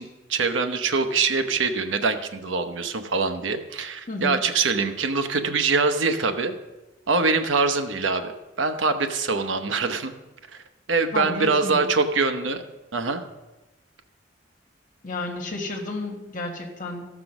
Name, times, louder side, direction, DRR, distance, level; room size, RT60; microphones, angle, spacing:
voice 1, 0.0-6.5 7.1-8.3 8.6-10.2 10.9-12.6 12.9-13.2, right 4 dB, 85° right, 8 dB, 0.9 m, -24 dB
voice 2, 4.1-4.4 11.1-11.9 15.0-17.1, left 2 dB, 45° left, 2 dB, 1.7 m, -31 dB
14.0 x 6.0 x 6.0 m, 1.1 s
head